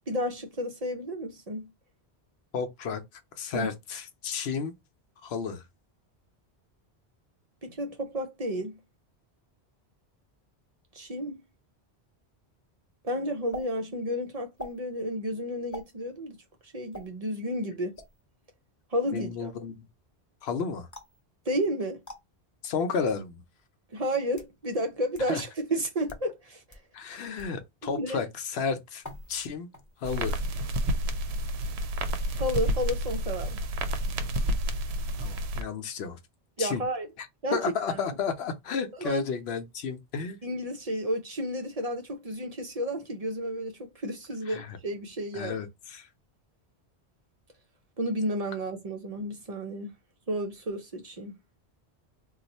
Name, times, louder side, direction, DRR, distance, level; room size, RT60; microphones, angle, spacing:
voice 1, 0.1-1.7 3.5-3.7 7.6-8.8 10.9-11.4 13.0-16.4 16.6-18.0 18.9-19.5 21.5-22.0 23.9-26.3 26.7-26.8 27.8-28.2 32.3-33.6 36.6-37.1 37.4-37.6 37.9-38.0 39.0-39.2 40.4-45.6 48.0-49.9 50.3-51.3, equal, 45° right, 0.5 m, -31 dB
voice 2, 2.5-3.0 3.3-4.7 5.2-5.6 19.1-19.9 20.4-20.9 22.6-23.4 25.3-25.4 26.9-29.0 29.3-29.7 30.0-30.4 35.2-36.2 36.6-36.8 37.2-37.3 37.5-40.4 44.5-44.8 45.3-46.1, left 5 dB, 70° left, 0.9 m, -32 dB
sound 1, 13.5-13.7 14.6-14.8 15.7-15.9 16.9-17.1 17.9-18.2 20.9-21.2 22.0-22.2 23.1-23.2 24.1-24.5 25.1-25.2 25.9-26.3 26.7-26.8 27.4-27.6 29.0-29.5 29.7-30.1, equal, 20° left, 0.8 m, -43 dB
sound 2, 30.0-35.6, right 1 dB, 75° right, 0.8 m, -30 dB
2.6 x 2.3 x 3.9 m
omnidirectional pair, 1.1 m